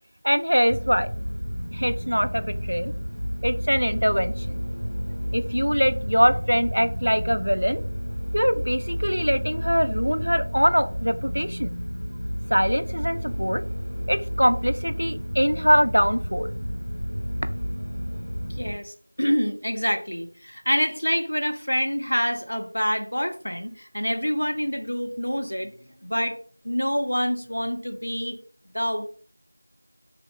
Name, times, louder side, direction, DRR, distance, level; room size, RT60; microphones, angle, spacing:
voice 1, 0.2-1.1 1.7-2.9 3.4-4.6 5.3-7.8 8.3-11.7 12.5-13.6 14.1-16.5, equal, 65° right, 11 dB, 0.3 m, -23 dB
sound 1, 0.7-18.7, equal, 85° left, 1.1 m, -31 dB
voice 2, 18.6-25.7 26.0-26.4 26.6-28.4 28.7-29.1, equal, 35° left, 6 dB, 0.3 m, -26 dB
3.4 x 2.1 x 3.2 m, 0.43 s
figure-of-eight pair, 180°, 0 cm